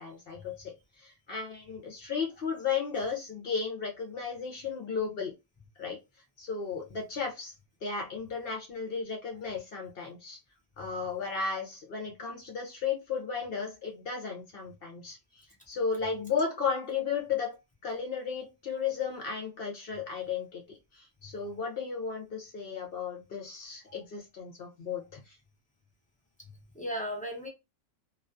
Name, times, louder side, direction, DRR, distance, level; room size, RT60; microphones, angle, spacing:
voice 1, 0.0-5.3 5.8-6.0 6.4-7.5 7.8-10.4 10.8-15.2 15.7-25.3, left 5 dB, 60° left, 0.7 m, -34 dB
voice 2, 21.2-21.5 23.9-24.0 26.4-27.5, equal, 10° left, 0.3 m, -38 dB
2.3 x 2.2 x 2.5 m
omnidirectional pair, 1.4 m